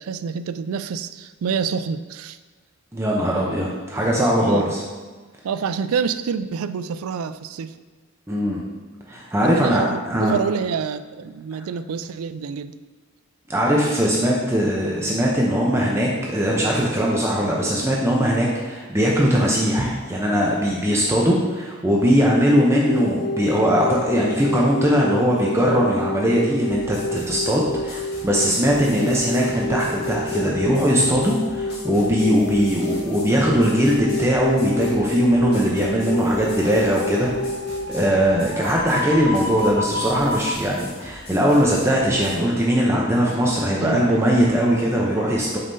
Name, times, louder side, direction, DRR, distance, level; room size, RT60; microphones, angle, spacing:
voice 1, 0.0-2.4 4.4-4.7 5.4-7.7 9.4-12.7 29.0-29.2 43.8-44.2, right 6 dB, 75° right, 12 dB, 0.3 m, -27 dB
voice 2, 2.9-4.8 8.3-8.6 9.1-10.3 13.5-37.5 37.9-45.6, equal, 10° right, -3 dB, 0.6 m, -20 dB
sound 1, 22.9-37.9, left 2 dB, 85° left, 0.4 m, -29 dB
sound 2, 26.6-42.4, left 1 dB, 45° left, 2.1 m, -42 dB
sound 3, 34.1-40.5, left 2 dB, 55° right, 0.8 m, -32 dB
8.3 x 5.5 x 2.7 m, 1.4 s
head